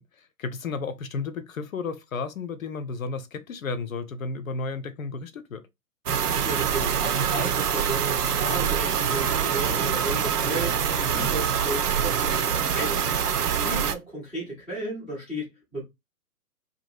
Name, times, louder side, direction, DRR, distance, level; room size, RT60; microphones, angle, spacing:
voice 1, 0.2-5.6 11.1-11.3, left 4 dB, 60° left, 0.6 m, -33 dB
sound 1, 6.1-14.0, right 7 dB, 75° right, 0.7 m, -25 dB
voice 2, 6.4-15.8, right 1 dB, ahead, 0.5 m, -34 dB
2.8 x 2.6 x 2.7 m
figure-of-eight pair, 130°, 47 cm